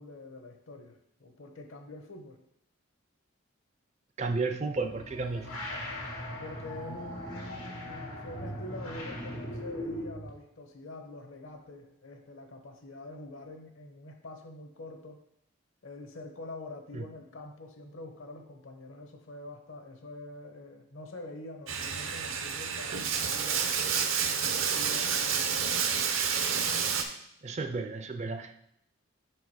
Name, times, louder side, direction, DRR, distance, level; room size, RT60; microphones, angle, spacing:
voice 1, 0.0-2.4 6.4-15.2 15.8-26.1, left 2 dB, 70° left, 4 dB, 1.0 m, -45 dB
voice 2, 4.2-5.6 16.9-17.1 27.4-28.7, right 3 dB, 30° right, 7 dB, 0.4 m, -33 dB
sound 1, 4.7-10.3, left 1 dB, 90° left, 1.8 m, -39 dB
Bathtub (filling or washing), 21.7-27.0, right 7 dB, 70° right, 0.7 m, -29 dB
5.9 x 4.6 x 4.7 m, 0.73 s
head